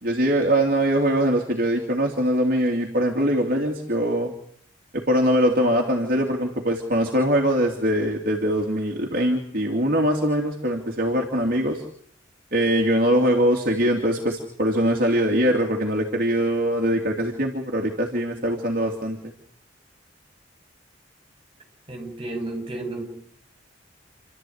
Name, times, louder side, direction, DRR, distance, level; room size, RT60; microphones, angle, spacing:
voice 1, 0.0-4.3 4.9-11.8 12.5-19.3, equal, 50° right, 0 dB, 2.8 m, -22 dB
voice 2, 21.9-23.0, right 2 dB, 30° right, 4 dB, 6.3 m, -32 dB
28.5 x 13.0 x 9.6 m, 0.65 s
head